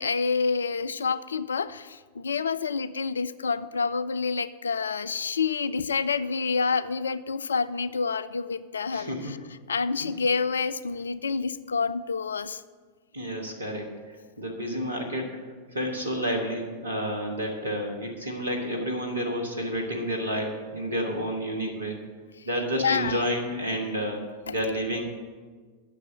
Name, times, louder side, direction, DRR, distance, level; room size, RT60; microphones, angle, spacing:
voice 1, 0.0-9.4 9.7-12.6 22.8-23.3 24.5-24.6, left 5 dB, 70° left, 17 dB, 0.3 m, -28 dB
voice 2, 8.9-9.3 13.1-13.9 14.4-15.3 15.7-22.0 22.4-25.0, equal, 75° right, 3 dB, 1.6 m, -30 dB
8.5 x 6.5 x 7.5 m, 1.5 s
figure-of-eight pair, 90°, 0 cm